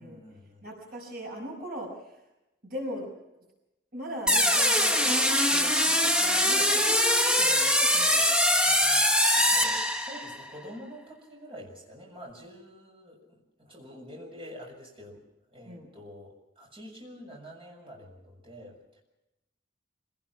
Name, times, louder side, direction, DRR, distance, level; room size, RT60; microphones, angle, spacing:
voice 1, 0.0-0.6 6.5-6.7 8.6-15.2 15.5-18.8, equal, 30° right, 0 dB, 6.6 m, -47 dB
voice 2, 0.6-1.9 2.6-3.1 3.9-8.2 15.6-15.9, equal, 55° right, 1 dB, 5.6 m, -39 dB
sound 1, 4.3-10.4, left 1 dB, 5° right, 1.3 m, -23 dB
25.5 x 18.5 x 6.0 m, 0.94 s
head